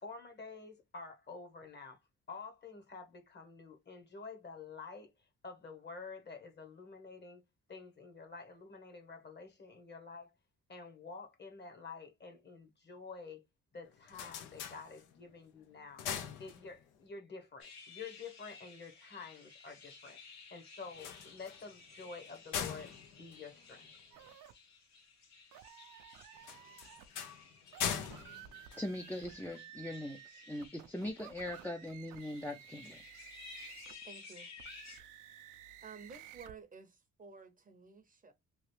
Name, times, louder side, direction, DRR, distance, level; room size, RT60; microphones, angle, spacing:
voice 1, 0.0-2.0 2.3-7.4 7.7-10.3 10.7-13.4 13.7-16.0 16.4-20.2 20.5-23.9, left 4 dB, 35° left, 1.0 m, -49 dB
sound 1, 13.8-15.4 15.7-17.1 20.8-24.3 26.4-29.5, left 8 dB, 90° left, 0.7 m, -42 dB
sound 2, 17.6-35.0, left 4 dB, 60° left, 1.3 m, -56 dB
sound 3, 24.1-24.5 25.5-27.1 27.6-34.0 34.6-36.5, right 11 dB, 85° right, 0.5 m, -54 dB
voice 2, 28.8-33.0, left 1 dB, 5° left, 0.4 m, -41 dB
voice 3, 34.0-34.5 35.8-38.3, right 5 dB, 30° right, 0.7 m, -53 dB
3.1 x 2.4 x 3.1 m
cardioid pair, 90°, 30 cm